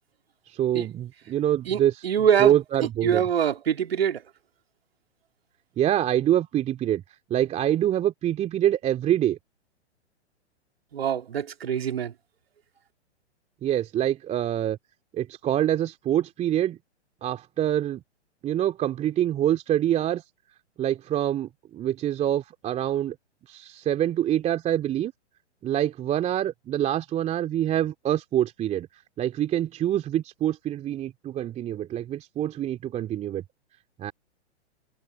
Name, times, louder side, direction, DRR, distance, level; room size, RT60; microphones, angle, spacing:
voice 1, 0.5-2.0 2.4-3.2 5.8-7.0 7.3-9.4 13.6-14.8 15.1-16.8 17.2-18.0 18.4-20.2 20.8-23.2 23.5-25.1 25.6-28.9 29.2-33.4 34.0-34.1, right 11 dB, 20° right, 2.5 m, -25 dB
voice 2, 1.6-2.5 3.0-4.2 10.9-12.1, right 8 dB, 60° right, 3.2 m, -24 dB
figure-of-eight pair, 115°, 35 cm